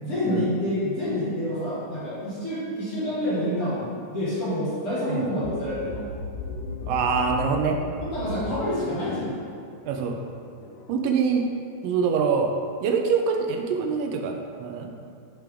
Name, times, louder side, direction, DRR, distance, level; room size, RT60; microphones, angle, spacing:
voice 1, 0.0-6.1 8.0-9.3, left 1 dB, 50° left, -9 dB, 2.2 m, -28 dB
sound 1, 5.4-11.1, left 3 dB, 70° left, 1.7 m, -36 dB
voice 2, 6.9-7.8 9.8-10.2 10.9-11.5 11.8-12.5 12.8-15.1, right 5 dB, 85° right, 3 dB, 2.2 m, -25 dB
9.1 x 5.1 x 3.5 m, 2.3 s
omnidirectional pair, 3.8 m